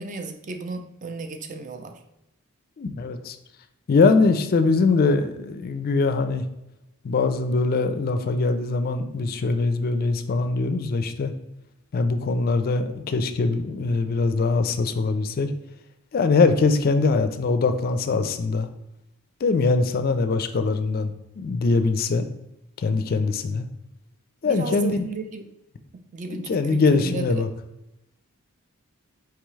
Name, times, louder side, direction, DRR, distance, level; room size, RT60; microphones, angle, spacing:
voice 1, 0.0-1.9 24.4-25.4 26.1-27.4, right 3 dB, 35° right, 6 dB, 0.4 m, -34 dB
voice 2, 2.8-3.4 3.9-6.4 7.0-11.3 11.9-15.5 16.1-18.7 19.4-22.3 22.8-23.7 24.4-25.1 26.3-27.5, left 3 dB, 40° left, 9 dB, 0.4 m, -22 dB
4.7 x 3.5 x 3.1 m, 0.89 s
head